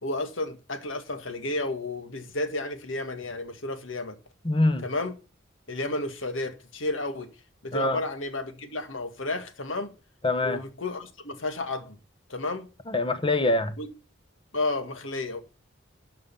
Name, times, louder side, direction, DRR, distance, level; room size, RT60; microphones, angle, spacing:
voice 1, 0.0-4.2 4.8-5.1 5.7-7.3 7.6-9.9 10.4-12.0 12.3-12.7 13.8-13.9 14.5-15.4, left 2 dB, 75° left, 2.0 m, -32 dB
voice 2, 4.4-4.9 7.7-8.0 10.2-10.6 12.9-13.8, left 2 dB, 25° left, 1.1 m, -24 dB
12.5 x 5.5 x 7.1 m
head